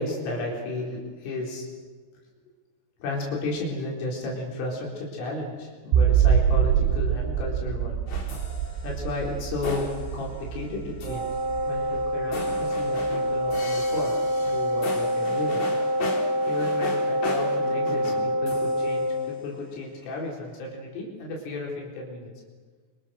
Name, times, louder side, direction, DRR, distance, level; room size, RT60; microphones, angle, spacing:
voice 1, 0.0-1.7 3.0-8.0 8.8-9.9 10.1-11.3 11.7-14.2 14.5-15.6 16.4-22.3, left 2 dB, 75° left, -2 dB, 6.8 m, -33 dB
sound 1, 5.9-13.1, right 8 dB, 75° right, 3.5 m, -25 dB
sound 2, 8.1-19.9, left 2 dB, 40° left, 4.4 m, -38 dB
Wind instrument woodwind instrument, 11.0-19.2, equal, 45° right, 9.1 m, -26 dB
28.0 x 26.5 x 6.5 m, 1.5 s
omnidirectional pair, 5.7 m